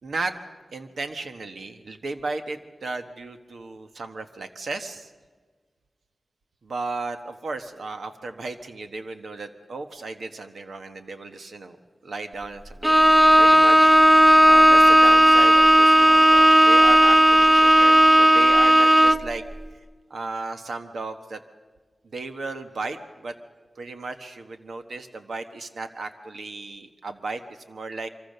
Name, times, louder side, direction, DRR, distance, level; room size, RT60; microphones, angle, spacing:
voice 1, 0.0-0.4 0.7-5.1 6.6-11.8 12.0-13.1 13.4-13.9 14.4-19.4 20.1-21.4 22.1-23.3 23.8-27.4 27.7-28.1, right 3 dB, 85° right, 8 dB, 1.2 m, -35 dB
Bowed string instrument, 12.8-19.3, equal, 15° right, 0.8 m, -14 dB
25.5 x 25.5 x 6.7 m, 1.4 s
wide cardioid pair, 80°, 0 cm